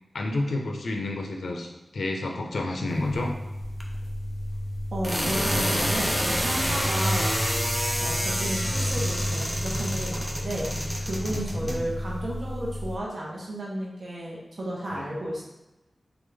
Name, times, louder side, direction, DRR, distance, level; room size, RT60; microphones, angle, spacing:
voice 1, 0.1-3.4 8.0-8.1 11.3-11.9 14.9-15.2, left 2 dB, 90° left, 2 dB, 0.6 m, -30 dB
sound 1, 2.9-13.0, equal, 5° right, 0.6 m, -28 dB
voice 2, 4.9-7.3 8.0-15.4, right 1 dB, 60° right, -4 dB, 0.9 m, -33 dB
3.8 x 3.5 x 3.4 m, 0.98 s
wide cardioid pair, 100°, 0 cm